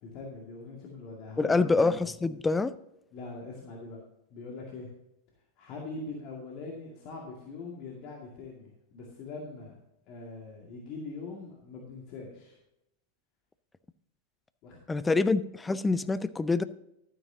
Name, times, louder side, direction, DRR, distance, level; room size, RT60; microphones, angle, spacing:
voice 1, 0.0-1.8 3.1-4.0 4.3-4.9 5.6-9.8 10.1-12.6 14.6-14.8 15.0-15.2, left 3 dB, 40° left, 2.1 m, -42 dB
voice 2, 1.4-2.7 14.9-16.6, left 3 dB, 10° left, 0.5 m, -26 dB
12.0 x 9.8 x 2.8 m
figure-of-eight pair, 90°, 0 cm